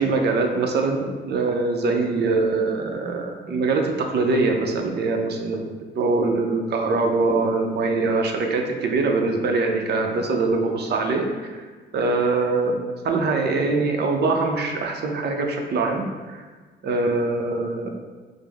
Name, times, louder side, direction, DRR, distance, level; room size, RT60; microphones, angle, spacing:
voice 1, 0.0-11.7 11.9-12.8 13.0-16.4 16.8-17.9, right 3 dB, 55° right, 3 dB, 0.6 m, -23 dB
5.0 x 2.0 x 3.5 m, 1.4 s
cardioid pair, 90°, 20 cm